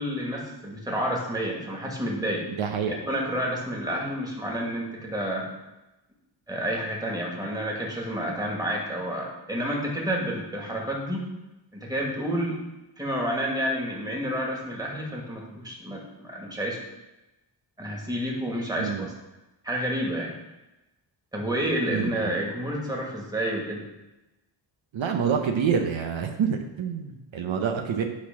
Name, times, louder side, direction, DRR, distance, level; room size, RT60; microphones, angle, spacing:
voice 1, 0.0-2.5 2.8-5.5 6.5-11.3 11.7-12.6 13.0-16.8 17.8-19.1 19.6-20.3 21.3-23.8, equal, 10° right, -2 dB, 2.0 m, -29 dB
voice 2, 2.5-3.0 18.8-19.1 21.9-22.3 24.9-28.1, right 7 dB, 75° right, 4 dB, 1.0 m, -27 dB
10.0 x 4.2 x 6.0 m, 1.0 s
wide cardioid pair, 130°, 47 cm